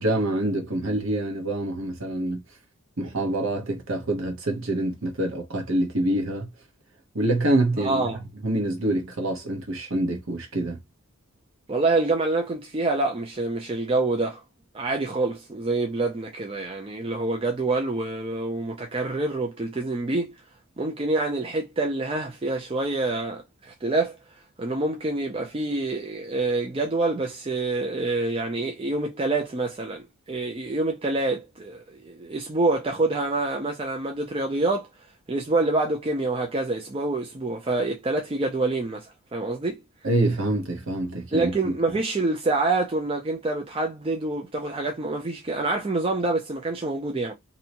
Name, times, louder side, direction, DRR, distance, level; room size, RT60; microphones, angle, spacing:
voice 1, 0.0-2.4 3.0-6.5 7.1-8.1 8.4-10.8 40.0-41.7, right 1 dB, 60° right, 0.9 m, -26 dB
voice 2, 7.8-8.2 11.7-14.4 14.7-20.3 20.8-24.2 24.6-34.9 35.3-39.8 41.3-47.3, right 2 dB, 25° right, 0.4 m, -26 dB
2.7 x 2.1 x 2.7 m
head